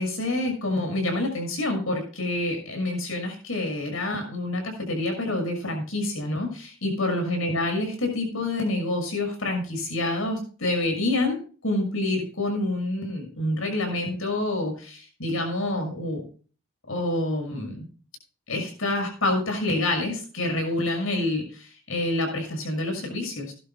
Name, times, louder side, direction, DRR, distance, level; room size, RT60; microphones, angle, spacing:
voice 1, 0.0-16.2 16.9-17.9 18.5-23.5, left 2 dB, 75° left, 3 dB, 6.1 m, -27 dB
18.5 x 11.5 x 2.2 m, 0.38 s
head